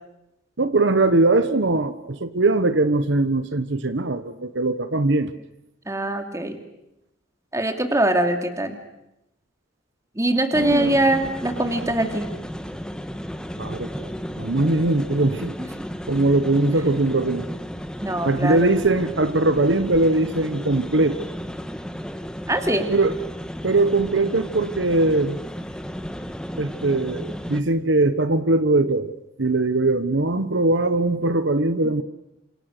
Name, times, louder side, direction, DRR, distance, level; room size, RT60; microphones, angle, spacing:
voice 1, 0.6-5.3 10.6-10.9 13.6-14.1 14.4-15.6 16.1-17.5 18.2-21.3 22.9-23.2 23.6-25.4 26.6-29.1 29.4-32.0, right 2 dB, 65° right, 11 dB, 1.2 m, -21 dB
voice 2, 5.9-6.6 7.5-8.8 10.2-12.3 15.8-15.9 18.0-18.7 22.5-22.9, right 1 dB, 15° right, 5 dB, 2.7 m, -22 dB
sound 1, 10.5-27.6, equal, 5° left, 1.4 m, -34 dB
28.5 x 27.5 x 6.7 m, 0.88 s
head